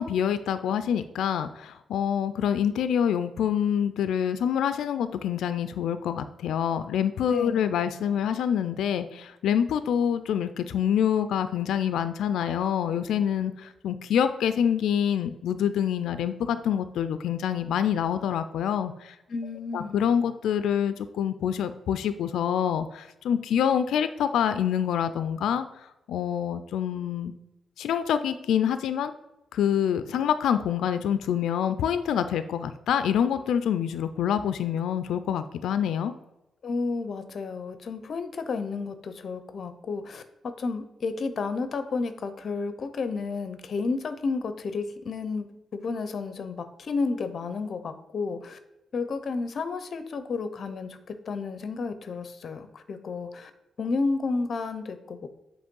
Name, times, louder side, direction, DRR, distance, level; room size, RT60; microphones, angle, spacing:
voice 1, 0.0-19.2 19.7-25.7 26.1-27.3 27.8-29.1 29.5-36.1, left 9 dB, 90° left, 11 dB, 0.3 m, -26 dB
voice 2, 7.3-7.7 19.3-20.0 36.6-40.2 40.6-45.4 45.7-48.6 48.9-53.5 53.8-55.3, left 4 dB, 40° left, 10 dB, 0.6 m, -31 dB
7.9 x 3.1 x 5.3 m, 0.94 s
wide cardioid pair, 175°, 0 cm